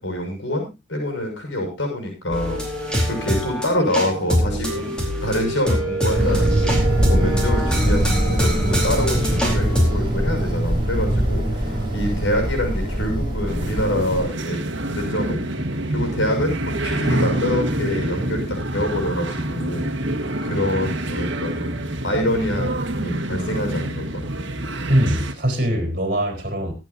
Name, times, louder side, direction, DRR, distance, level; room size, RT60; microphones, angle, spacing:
voice 1, 0.0-2.6 3.0-4.9 5.2-6.7 7.1-15.4 15.9-19.9 20.4-24.2, left 1 dB, 75° left, 3 dB, 6.7 m, -26 dB
sound 1, 2.3-10.0, equal, 5° left, 4.3 m, -24 dB
sound 2, 6.1-14.2, right 1 dB, 25° right, 6.8 m, -22 dB
sound 3, 13.5-25.3, right 1 dB, 65° right, 1.7 m, -26 dB
voice 2, 24.9-26.7, equal, 45° right, 3 dB, 4.0 m, -22 dB
23.5 x 9.1 x 2.7 m, 0.26 s
head